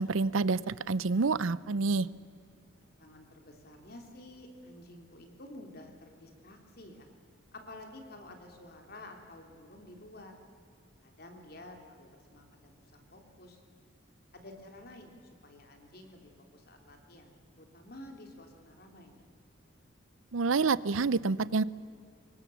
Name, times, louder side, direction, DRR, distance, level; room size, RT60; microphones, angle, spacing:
voice 1, 0.0-2.1 20.3-21.6, right 4 dB, 85° right, 19 dB, 0.6 m, -28 dB
voice 2, 2.8-7.1 7.5-10.3 11.0-13.6 14.3-15.1 15.4-17.3 17.6-19.2, left 1 dB, 50° left, 4 dB, 3.4 m, -51 dB
26.0 x 22.5 x 7.1 m, 2.3 s
head